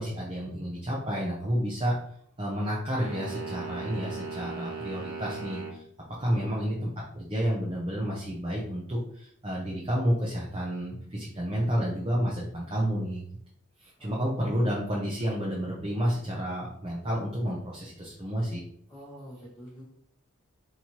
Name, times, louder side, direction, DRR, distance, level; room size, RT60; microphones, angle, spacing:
voice 1, 0.0-2.0 2.4-5.8 6.2-13.2 13.8-18.6, equal, 25° right, -4 dB, 0.6 m, -30 dB
sound 1, 3.0-5.8, right 4 dB, 85° right, 0.8 m, -38 dB
voice 2, 6.2-6.6 14.0-14.7 18.9-19.8, equal, 10° left, -9 dB, 0.9 m, -47 dB
4.0 x 2.9 x 2.9 m, 0.65 s
head